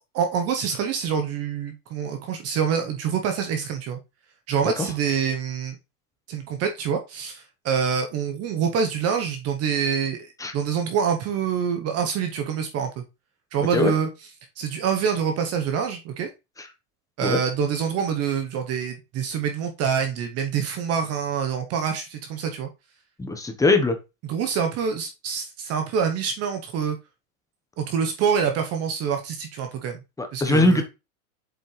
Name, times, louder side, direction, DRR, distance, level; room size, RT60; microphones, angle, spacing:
voice 1, 0.1-4.0 4.5-5.8 6.3-13.0 13.5-14.1 14.6-16.3 17.2-22.7 24.2-27.0 27.8-30.0 30.3-30.8, right 7 dB, 35° right, 5 dB, 1.0 m, -26 dB
voice 2, 23.2-24.0 30.2-30.8, left 2 dB, 5° left, 6 dB, 1.1 m, -21 dB
7.6 x 5.3 x 3.3 m, 0.26 s
supercardioid pair, 130°, 45 cm